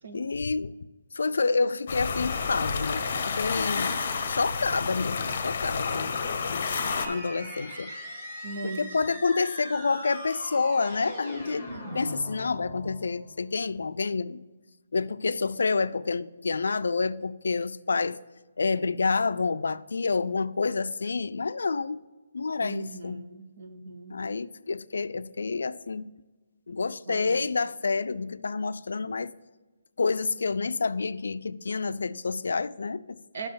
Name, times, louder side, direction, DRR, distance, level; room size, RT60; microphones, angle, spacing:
voice 1, 0.1-0.7 1.1-4.0 4.3-6.2 6.5-6.7 7.1-7.9 8.6-11.7 11.9-14.4 14.9-18.2 18.6-22.0 22.3-23.2 24.1-26.1 26.7-29.3 30.0-33.2, left 4 dB, 85° left, 0.3 m, -28 dB
sound 1, 1.9-7.1, left 5 dB, 40° left, 0.7 m, -30 dB
voice 2, 5.8-6.1 8.4-9.0 22.6-24.2 27.1-27.4 33.3-33.5, right 3 dB, 50° right, 0.8 m, -39 dB
sound 2, 6.9-13.4, equal, 15° right, 1.5 m, -40 dB
6.2 x 5.5 x 6.8 m
hypercardioid pair, 175°, 0 cm